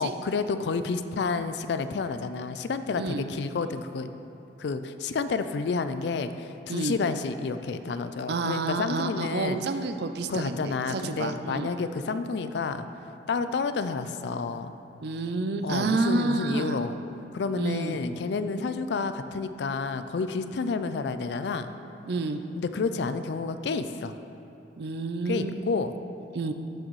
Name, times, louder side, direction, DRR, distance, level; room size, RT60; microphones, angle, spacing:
voice 1, 0.0-4.1 4.6-9.6 10.3-12.8 13.3-14.8 15.6-17.0 17.3-21.7 22.6-24.2 25.3-25.9, left 4 dB, 65° left, 11 dB, 0.4 m, -30 dB
voice 2, 8.3-11.7 15.0-16.8 17.6-18.0 22.1-22.4 24.8-25.5 26.3-26.5, right 3 dB, 60° right, 8 dB, 0.5 m, -29 dB
13.0 x 6.4 x 3.1 m, 2.8 s
head